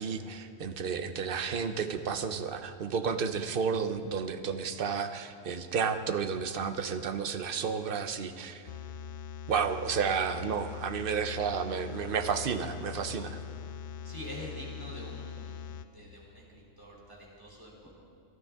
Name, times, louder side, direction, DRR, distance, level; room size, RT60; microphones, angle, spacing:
voice 1, 0.0-8.7 9.5-13.4, right 6 dB, 55° right, 9 dB, 0.8 m, -32 dB
sound 1, 8.7-15.9, left 6 dB, 60° left, 0.6 m, -42 dB
voice 2, 14.0-15.6 15.9-17.9, equal, 15° right, -4 dB, 3.1 m, -45 dB
23.5 x 12.0 x 3.6 m, 2.4 s
omnidirectional pair, 1.3 m